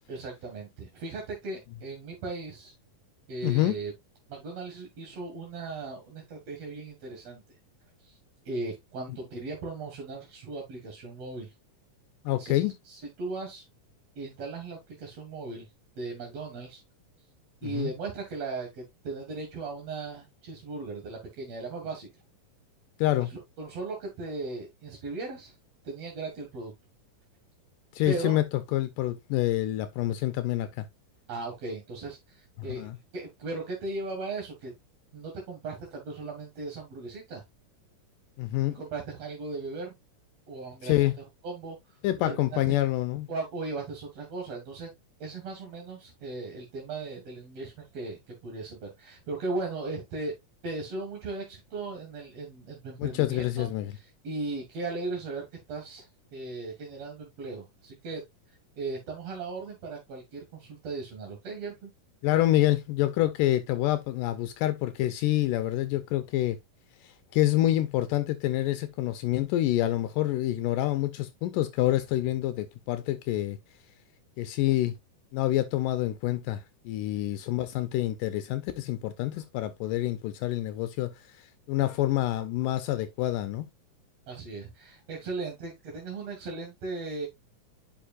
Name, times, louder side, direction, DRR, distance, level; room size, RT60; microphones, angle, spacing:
voice 1, 0.1-2.7 3.3-3.9 4.3-7.4 8.0-8.2 8.5-11.5 12.4-12.5 12.9-13.6 14.2-15.7 16.0-16.8 17.6-22.1 23.2-23.3 23.6-25.5 25.8-26.7 28.1-28.4 31.3-32.9 33.1-34.7 35.1-37.4 38.7-39.9 40.5-41.0 41.4-42.0 42.3-42.8 43.3-44.9 45.2-50.3 50.6-58.2 58.8-61.9 84.3-87.3, right 3 dB, 55° right, 2.8 m, -37 dB
voice 2, 3.4-3.8 12.3-12.7 17.6-17.9 23.0-23.3 28.0-28.4 28.7-30.9 32.6-33.0 38.4-38.8 40.8-41.1 42.0-43.3 53.0-53.9 62.2-66.6 67.0-73.6 74.4-75.0 75.3-81.1 81.7-83.7, left 15 dB, 80° left, 2.2 m, -27 dB
10.0 x 5.0 x 2.4 m
omnidirectional pair, 3.8 m